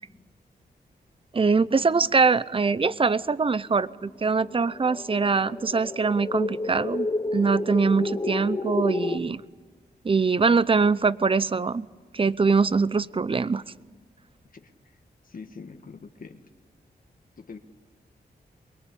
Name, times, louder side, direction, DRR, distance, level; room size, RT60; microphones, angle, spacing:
voice 1, 1.3-7.1 7.3-9.4 10.0-11.9 12.1-13.6, right 4 dB, 30° right, 0.7 m, -23 dB
sound 1, 4.0-9.2, left 2 dB, 25° left, 1.2 m, -30 dB
voice 2, 14.5-15.0 15.2-16.4 17.4-17.6, left 5 dB, 55° left, 1.5 m, -44 dB
23.5 x 22.0 x 8.5 m
cardioid pair, 75°, 17 cm